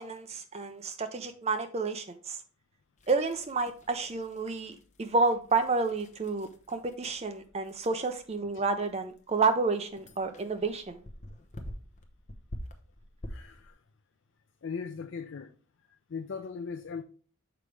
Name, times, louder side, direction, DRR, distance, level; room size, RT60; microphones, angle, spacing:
voice 1, 0.0-2.4 3.1-11.0, right 3 dB, 30° right, 0.5 m, -30 dB
sound 1, 3.0-13.7, equal, 35° left, 0.8 m, -48 dB
voice 2, 13.3-13.7 14.6-15.5 16.1-17.0, left 5 dB, 55° left, 0.4 m, -38 dB
6.8 x 4.8 x 3.2 m
head